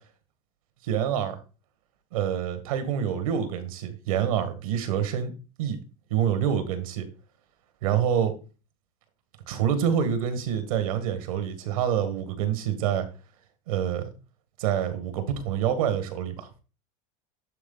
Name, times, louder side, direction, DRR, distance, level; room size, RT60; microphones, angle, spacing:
voice 1, 0.8-1.4 2.1-5.3 5.6-5.8 6.1-7.1 7.8-8.4 9.5-13.1 13.7-14.1 14.6-16.5, right 9 dB, 85° right, 1.6 m, -26 dB
11.0 x 3.7 x 3.9 m
supercardioid pair, 110°, 17 cm